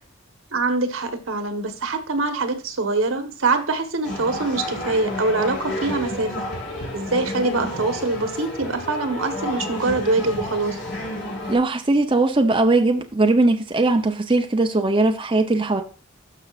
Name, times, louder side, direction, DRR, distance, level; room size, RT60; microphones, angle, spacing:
voice 1, 0.5-6.5 6.9-10.8, right 3 dB, 85° right, 1.3 m, -24 dB
sound 1, 4.0-11.6, left 1 dB, 55° left, 3.3 m, -30 dB
voice 2, 11.5-15.8, right 2 dB, 25° right, 0.6 m, -19 dB
12.5 x 5.9 x 2.5 m
head